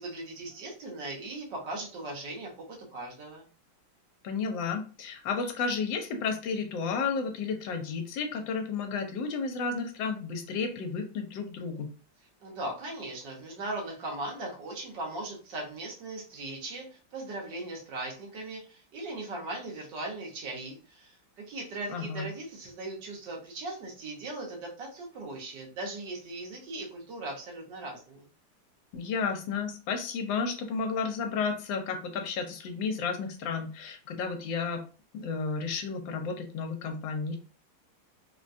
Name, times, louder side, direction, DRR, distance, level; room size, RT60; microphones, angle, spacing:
voice 1, 0.0-2.5 2.9-3.5 12.4-28.2, right 2 dB, 70° right, -2 dB, 1.6 m, -39 dB
voice 2, 4.2-11.9 21.9-22.3 28.9-34.8 35.1-37.4, left 5 dB, 80° left, 4 dB, 1.3 m, -32 dB
3.6 x 2.2 x 2.5 m, 0.37 s
omnidirectional pair, 2.0 m